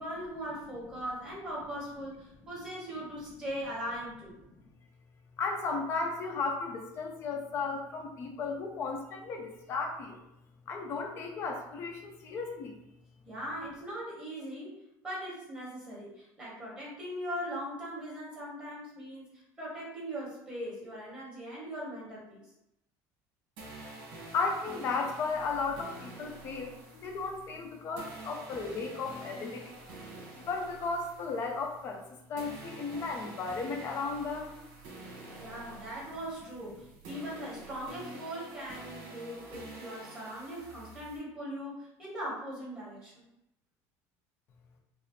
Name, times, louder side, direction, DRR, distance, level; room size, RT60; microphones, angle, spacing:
voice 1, 0.0-4.3 13.3-22.4 35.4-43.3, equal, 15° right, -7 dB, 1.4 m, -40 dB
voice 2, 5.4-10.2 10.7-12.8 24.3-29.8 30.4-34.6, left 4 dB, 35° left, 3 dB, 0.6 m, -35 dB
sound 1, 23.6-32.1 32.4-41.2, right 2 dB, 70° right, 1.3 m, -48 dB
4.9 x 2.0 x 3.1 m, 0.85 s
cardioid pair, 170°, 7 cm